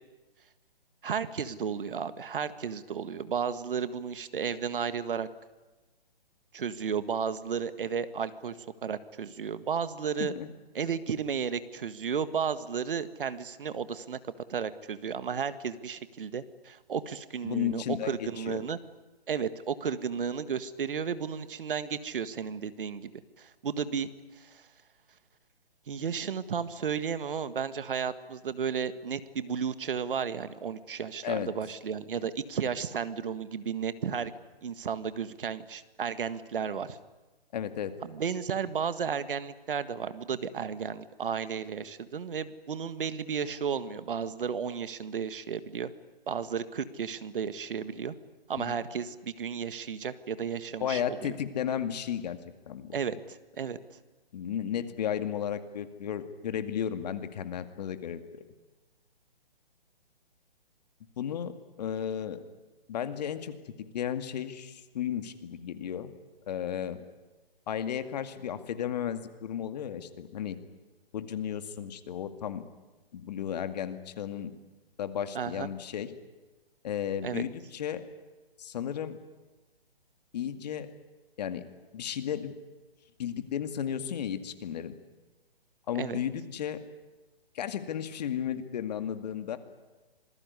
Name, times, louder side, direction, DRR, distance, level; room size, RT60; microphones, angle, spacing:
voice 1, 1.0-5.3 6.5-8.5 8.8-10.3 10.8-18.8 19.3-23.1 23.4-24.1 24.4-24.7 25.9-34.3 34.6-37.0 38.0-45.9 46.3-48.2 48.5-51.3 52.9-53.8 75.3-75.7 77.2-77.4 86.0-86.2, right 7 dB, 60° right, 13 dB, 1.7 m, -33 dB
voice 2, 17.4-18.6 31.2-31.5 37.5-37.9 48.6-48.7 50.8-52.4 52.7-53.0 54.3-58.2 61.2-61.5 61.8-62.4 62.9-63.5 63.9-66.1 66.5-67.0 67.7-70.6 71.1-72.6 73.1-74.5 75.0-76.1 76.8-78.0 78.6-79.2 80.3-80.9 81.4-81.6 81.9-82.5 83.2-85.0 85.9-86.8 87.5-89.6, left 9 dB, 45° left, 10 dB, 2.2 m, -34 dB
26.5 x 19.5 x 9.8 m, 1.2 s
hypercardioid pair, 145°, 30 cm